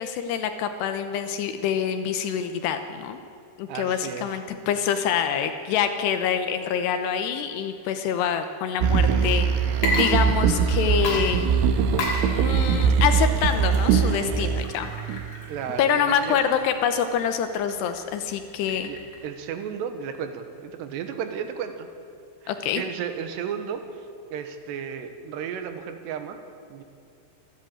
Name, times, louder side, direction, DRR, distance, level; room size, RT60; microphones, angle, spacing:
voice 1, 0.0-3.2 3.6-11.5 12.3-14.9 15.8-18.9 22.5-22.8, left 8 dB, 80° left, 8 dB, 2.5 m, -26 dB
voice 2, 3.7-4.4 15.5-16.4 18.8-21.9 22.4-24.1 24.3-26.4 26.7-26.8, right 7 dB, 70° right, 7 dB, 2.9 m, -34 dB
sound 1, 8.8-15.8 16.3-16.4, right 6 dB, 85° right, 3.7 m, -22 dB
Water / Liquid, 9.7-10.7 11.0-19.3, left 2 dB, 55° left, 4.7 m, -34 dB
27.0 x 11.0 x 8.9 m, 2.6 s
omnidirectional pair, 5.9 m